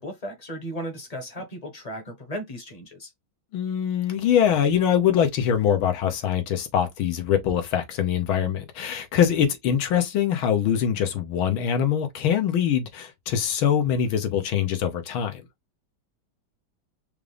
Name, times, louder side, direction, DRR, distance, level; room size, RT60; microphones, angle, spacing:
voice 1, 0.0-3.1, equal, 30° left, 0.7 m, -35 dB
voice 2, 3.5-15.4, left 9 dB, 85° left, 1.8 m, -23 dB
5.3 x 2.5 x 3.4 m
omnidirectional pair, 2.2 m